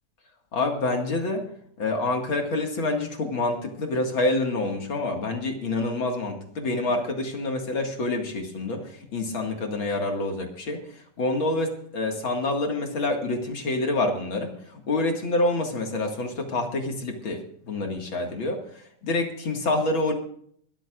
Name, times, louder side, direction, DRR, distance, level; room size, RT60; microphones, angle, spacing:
voice 1, 0.5-1.4 1.8-10.8 11.2-14.5 14.9-18.6 19.0-20.1, left 2 dB, 45° left, 3 dB, 2.4 m, -27 dB
22.0 x 13.5 x 2.5 m, 0.63 s
omnidirectional pair, 3.6 m